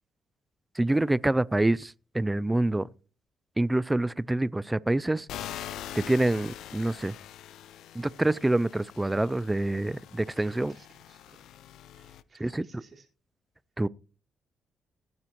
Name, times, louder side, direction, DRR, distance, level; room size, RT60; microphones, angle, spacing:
voice 1, 0.8-2.9 3.6-5.3 6.0-7.1 7.9-10.7 12.4-12.6 13.8-13.9, right 2 dB, 10° right, 0.4 m, -26 dB
sound 1, 5.3-12.2, left 11 dB, 80° left, 0.5 m, -44 dB
voice 2, 10.3-11.4 11.9-13.1, right 4 dB, 40° right, 4.3 m, -55 dB
17.5 x 9.5 x 3.0 m
cardioid pair, 90°, 0 cm